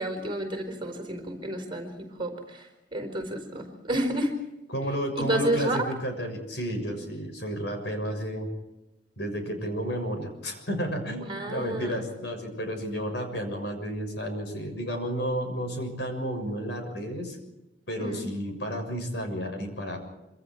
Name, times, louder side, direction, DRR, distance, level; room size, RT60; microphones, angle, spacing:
voice 1, 0.0-4.4 5.2-5.8 11.3-12.0 18.0-18.3, right 1 dB, 25° right, 3 dB, 4.6 m, -30 dB
voice 2, 4.7-8.5 9.2-17.4 17.9-20.0, equal, 60° left, 5 dB, 6.7 m, -32 dB
26.0 x 26.0 x 4.7 m, 0.94 s
head